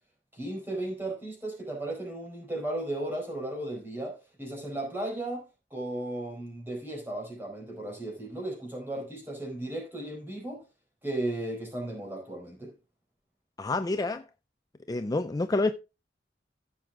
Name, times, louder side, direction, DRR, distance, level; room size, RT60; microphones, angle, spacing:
voice 1, 0.3-5.4 5.7-10.6 11.0-12.7, right 1 dB, 10° right, 4.7 m, -35 dB
voice 2, 13.6-14.3 14.9-15.7, left 2 dB, 20° left, 0.4 m, -28 dB
15.0 x 6.1 x 3.6 m
head